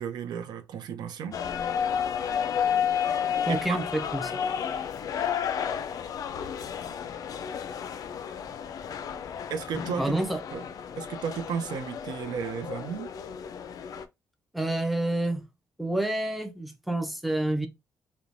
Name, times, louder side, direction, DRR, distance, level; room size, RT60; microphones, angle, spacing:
voice 1, 0.0-1.4 1.6-1.8 3.0-3.2 3.5-3.8 9.5-10.2 10.5-10.6 11.0-13.1, right 7 dB, 80° right, 0.5 m, -34 dB
sound 1, 1.3-14.0, left 8 dB, 55° left, 0.3 m, -32 dB
voice 2, 3.5-4.5 10.0-10.4 14.5-15.4 15.8-17.7, right 1 dB, ahead, 0.5 m, -28 dB
3.0 x 2.1 x 2.5 m
cardioid pair, 115°, 7 cm